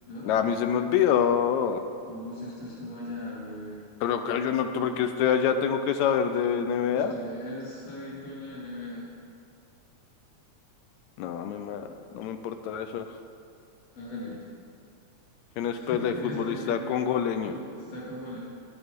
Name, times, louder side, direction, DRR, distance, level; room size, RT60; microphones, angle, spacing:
voice 1, 0.3-1.8 4.0-7.2 11.2-11.9 12.1-13.2 15.6-17.5, left 8 dB, 80° left, 8 dB, 1.9 m, -26 dB
voice 2, 2.1-3.8 6.9-9.1 14.0-14.4 15.7-16.8 17.5-18.4, left 1 dB, 60° left, -6 dB, 3.7 m, -39 dB
10.0 x 9.6 x 5.2 m, 2.5 s
omnidirectional pair, 3.4 m